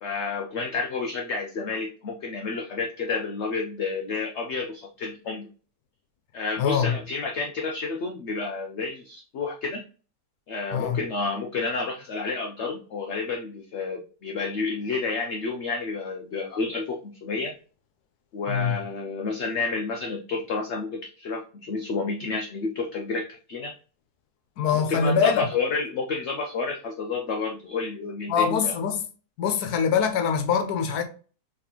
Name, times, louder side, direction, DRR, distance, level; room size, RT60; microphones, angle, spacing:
voice 1, 0.0-5.5 6.3-9.8 10.5-17.5 18.3-23.7 24.7-28.7, left 4 dB, 65° left, 0.7 m, -30 dB
voice 2, 6.6-7.0 10.7-11.0 18.5-18.8 24.6-25.5 28.3-29.0 29.4-31.0, left 6 dB, 80° left, 1.2 m, -23 dB
4.0 x 3.4 x 2.9 m
omnidirectional pair, 1.7 m